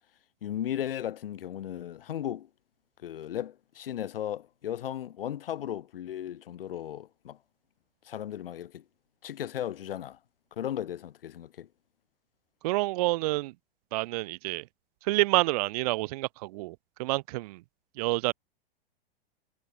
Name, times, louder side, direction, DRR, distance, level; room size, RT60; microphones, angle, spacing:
voice 1, 0.4-2.5 3.0-7.4 8.0-8.8 9.2-10.2 10.5-11.7, left 11 dB, 75° left, 0.6 m, -36 dB
voice 2, 12.6-13.5 13.9-14.6 15.0-17.6 18.0-18.3, right 21 dB, 45° right, 0.4 m, -28 dB
figure-of-eight pair, 100°, 29 cm